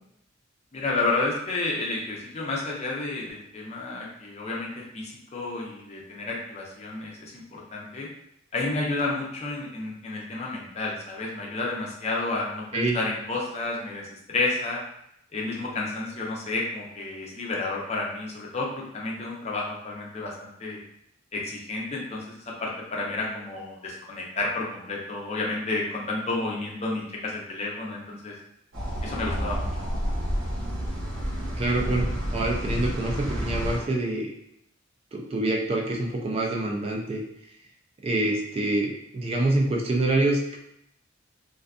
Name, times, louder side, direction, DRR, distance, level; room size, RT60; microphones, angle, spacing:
voice 1, 0.7-4.7 4.9-8.1 8.5-14.8 15.3-20.8 21.3-28.3 29.0-29.9, left 3 dB, 35° left, -2 dB, 0.5 m, -31 dB
sound 1, 28.7-33.8, equal, 65° right, 0.9 m, -29 dB
voice 2, 31.6-34.3 35.1-37.2 38.0-40.6, right 2 dB, 30° right, -1 dB, 0.3 m, -26 dB
2.5 x 2.3 x 2.3 m, 0.77 s
head